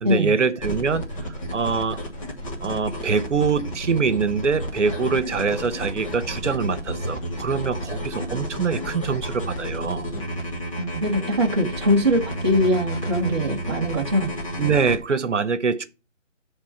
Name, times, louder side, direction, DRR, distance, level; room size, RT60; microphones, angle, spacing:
voice 1, 0.0-1.0 1.5-2.0 2.6-10.1 14.6-15.8, right 5 dB, 70° right, 1.0 m, -24 dB
sound 1, 0.6-15.0, equal, 25° left, 1.6 m, -31 dB
voice 2, 10.8-14.3, equal, 20° right, 0.9 m, -22 dB
11.0 x 3.6 x 5.7 m
hypercardioid pair, 170°, 37 cm